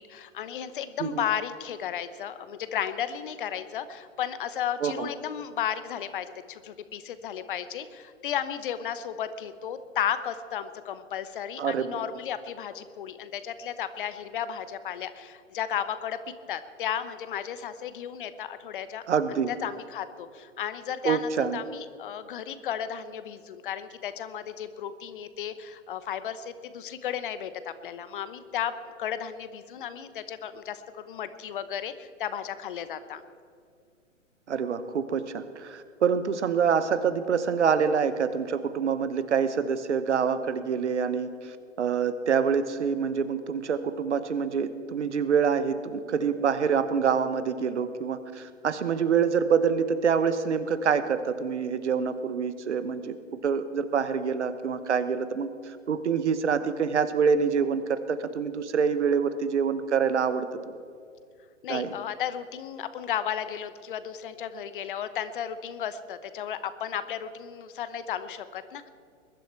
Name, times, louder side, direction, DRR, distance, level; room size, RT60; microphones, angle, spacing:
voice 1, 0.0-16.2 16.5-19.0 19.3-33.2 61.6-68.9, left 9 dB, 45° left, 13 dB, 0.9 m, -34 dB
voice 2, 11.6-11.9 19.1-19.5 21.0-21.6 34.5-41.3 41.8-53.1 53.4-55.5 55.9-60.5 61.7-61.9, right 6 dB, 60° right, 12 dB, 1.2 m, -26 dB
21.5 x 11.5 x 4.4 m, 2.3 s
figure-of-eight pair, 120°, 38 cm